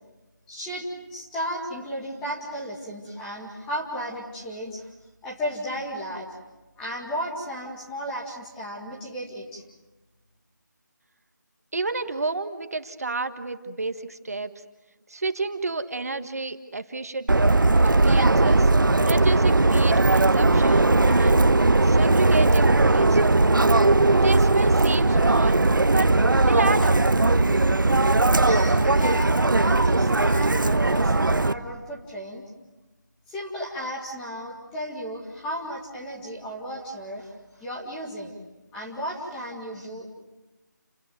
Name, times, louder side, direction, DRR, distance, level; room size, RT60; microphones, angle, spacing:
voice 1, 0.5-4.9 5.2-6.3 6.8-9.6 28.5-32.4 33.3-38.3 38.7-40.1, equal, 5° left, -4 dB, 2.1 m, -34 dB
voice 2, 11.7-14.5 15.1-17.3 17.8-18.7 19.0-21.4 21.8-23.2 24.2-25.6 25.9-26.1 26.5-27.0, right 3 dB, 50° right, 9 dB, 1.6 m, -30 dB
Subway metro underground, 17.3-31.5, right 2 dB, 90° right, 1.1 m, -19 dB
30.0 x 18.0 x 9.4 m, 1.1 s
figure-of-eight pair, 170°, 10 cm